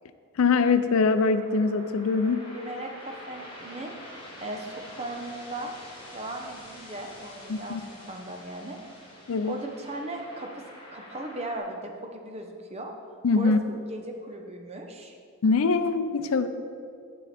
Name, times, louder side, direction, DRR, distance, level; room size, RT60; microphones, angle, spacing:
voice 1, 0.4-2.4 7.5-7.8 9.3-9.6 13.2-13.6 15.4-16.5, left 4 dB, 75° left, 11 dB, 0.4 m, -23 dB
sound 1, 1.0-11.6, left 1 dB, 25° left, 1.6 m, -46 dB
voice 2, 2.5-4.0 4.4-5.8 6.1-8.8 9.4-10.5 10.9-12.9 13.3-15.2, right 1 dB, 30° right, 3 dB, 0.7 m, -37 dB
7.5 x 7.5 x 4.2 m, 2.3 s
head